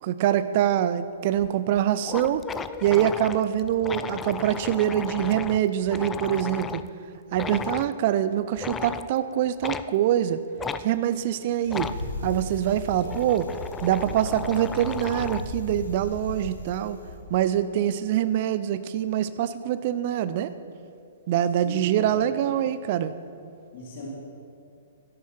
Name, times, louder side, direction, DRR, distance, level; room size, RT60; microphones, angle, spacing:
voice 1, 0.0-2.4 2.8-6.8 7.3-10.4 10.8-11.9 12.2-13.5 13.8-17.0 17.3-20.5 21.3-23.1, right 11 dB, 40° right, 13 dB, 0.6 m, -24 dB
sound 1, 1.4-1.5 1.8-1.9 2.0-6.9 7.3-7.9 8.6-9.1 9.6-9.9 10.6-10.8 11.7-12.0 12.8-15.5, left 6 dB, 15° left, 0.4 m, -35 dB
Bicycle, 11.7-17.2, left 2 dB, 75° left, 2.1 m, -37 dB
voice 2, 21.6-22.5 23.7-24.1, left 2 dB, 45° left, -5 dB, 3.5 m, -38 dB
13.0 x 11.0 x 5.9 m, 2.5 s
figure-of-eight pair, 115°, 0 cm